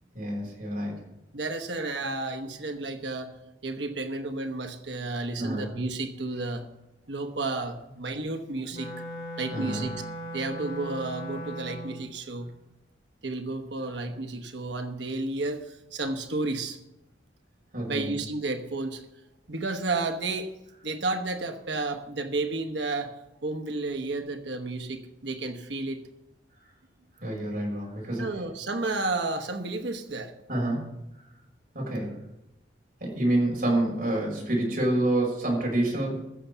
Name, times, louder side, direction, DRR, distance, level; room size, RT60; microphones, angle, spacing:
voice 1, 0.1-0.9 5.4-5.7 9.5-9.8 17.7-18.1 27.2-28.2 30.5-30.9 31.7-32.2 33.0-36.2, right 1 dB, 50° right, -2 dB, 6.1 m, -27 dB
voice 2, 1.3-3.3 3.6-6.7 7.1-8.9 9.4-9.9 10.3-12.5 13.2-16.8 17.9-19.1 19.5-20.5 20.8-23.1 23.4-26.1 28.2-30.3, right 2 dB, 70° right, 6 dB, 1.1 m, -32 dB
Wind instrument woodwind instrument, 8.7-12.1, equal, 50° left, 2.0 m, -38 dB
15.5 x 7.2 x 6.8 m, 0.89 s
head